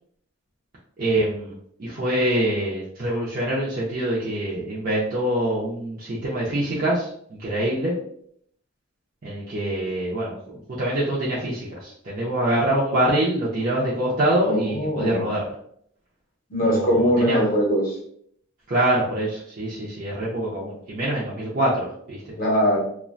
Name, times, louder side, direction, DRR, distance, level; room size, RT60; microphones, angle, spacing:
voice 1, 1.0-1.5 1.8-7.9 9.2-15.5 16.6-17.4 18.7-22.3, right 1 dB, 40° right, -6 dB, 0.4 m, -25 dB
voice 2, 14.4-15.3 16.5-18.0 22.4-22.8, equal, 40° left, -2 dB, 0.7 m, -21 dB
2.4 x 2.1 x 2.5 m, 0.67 s
head